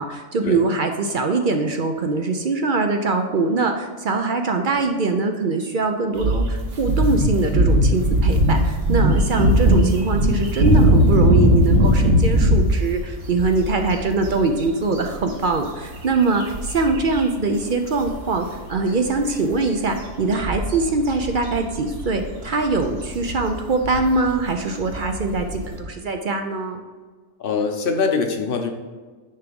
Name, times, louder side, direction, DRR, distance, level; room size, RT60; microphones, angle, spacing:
voice 1, 0.0-26.8, right 3 dB, 50° right, 5 dB, 0.6 m, -22 dB
sound 1, 6.2-17.2 17.5-17.7 18.0-25.8, equal, 70° right, 1.5 m, -20 dB
voice 2, 27.4-28.7, left 4 dB, 50° left, 4 dB, 1.0 m, -23 dB
9.9 x 3.5 x 5.2 m, 1.4 s
omnidirectional pair, 1.4 m